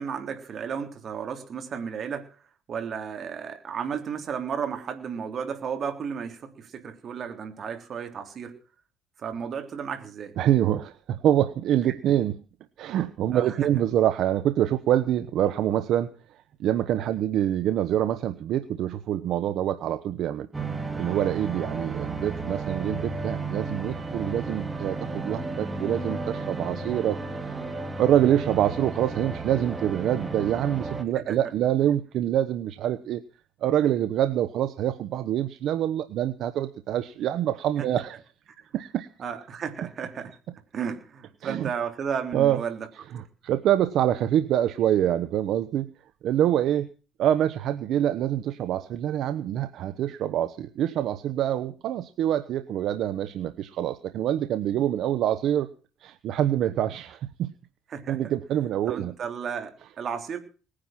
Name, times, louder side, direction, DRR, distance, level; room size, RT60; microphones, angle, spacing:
voice 1, 0.0-2.4 2.7-8.6 9.2-10.3 11.9-12.0 13.3-13.6 17.0-17.1 31.1-31.4 37.8-37.9 39.2-40.3 40.7-42.9 57.9-58.3 58.9-60.4, right 7 dB, 40° right, 6 dB, 3.5 m, -33 dB
voice 2, 10.4-12.4 12.8-16.1 16.6-20.5 21.0-27.5 28.0-33.2 33.6-38.2 38.7-39.1 41.4-41.7 42.3-42.6 43.1-45.9 46.2-46.9 47.2-55.7 56.0-57.5 58.1-59.1, right 11 dB, 60° right, 11 dB, 1.1 m, -25 dB
sound 1, 20.5-31.0, right 3 dB, 15° right, 2.8 m, -33 dB
20.0 x 10.0 x 5.9 m, 0.37 s
cardioid pair, 125°, 0 cm